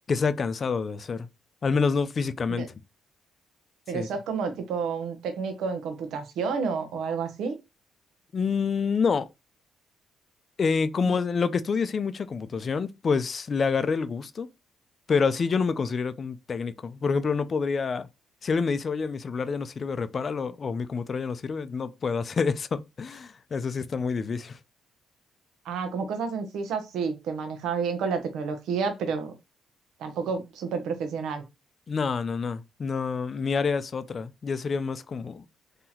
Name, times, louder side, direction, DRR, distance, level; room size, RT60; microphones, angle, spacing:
voice 1, 0.1-1.3 1.6-2.7 3.9-4.1 8.3-9.3 10.6-14.5 15.1-18.1 18.4-24.6 31.9-35.4, left 5 dB, 45° left, 0.4 m, -27 dB
voice 2, 3.9-7.6 11.0-11.2 25.6-29.3 30.0-31.4, right 5 dB, 80° right, 0.7 m, -30 dB
2.9 x 2.8 x 3.9 m
cardioid pair, 90°, 0 cm